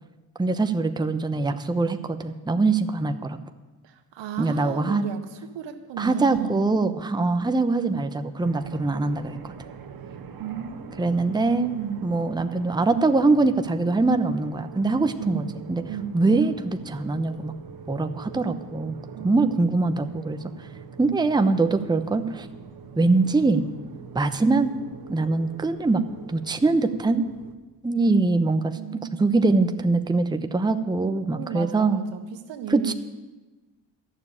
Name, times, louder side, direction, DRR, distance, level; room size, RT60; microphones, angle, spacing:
voice 1, 0.4-3.4 4.4-5.1 6.0-9.5 11.0-11.7 12.0-15.8 16.1-17.5 17.9-19.0 19.2-20.4 21.0-22.5 23.0-23.6 24.1-24.7 25.1-26.0 26.3-27.3 27.8-32.0 32.7-32.9, right 3 dB, 10° right, 8 dB, 0.8 m, -23 dB
voice 2, 3.8-6.6 10.4-12.0 15.2-15.4 15.9-16.2 19.1-19.5 28.8-29.2 31.0-32.2 32.5-32.9, right 8 dB, 80° right, 6 dB, 1.5 m, -35 dB
sound 1, 8.4-27.6, right 6 dB, 50° right, 1.3 m, -43 dB
12.0 x 6.9 x 9.9 m, 1.2 s
supercardioid pair, 70°, 43 cm